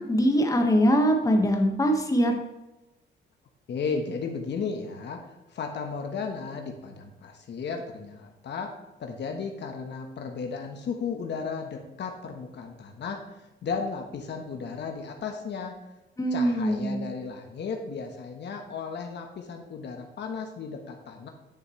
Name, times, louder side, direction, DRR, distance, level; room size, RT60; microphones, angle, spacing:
voice 1, 0.0-2.3 16.2-17.0, equal, 15° left, 2 dB, 1.5 m, -22 dB
voice 2, 3.7-5.2 5.5-8.7 9.0-13.2 13.6-15.8 16.3-21.3, left 5 dB, 60° left, 3 dB, 1.3 m, -34 dB
10.5 x 6.3 x 3.2 m, 0.99 s
cardioid pair, 90°, 20 cm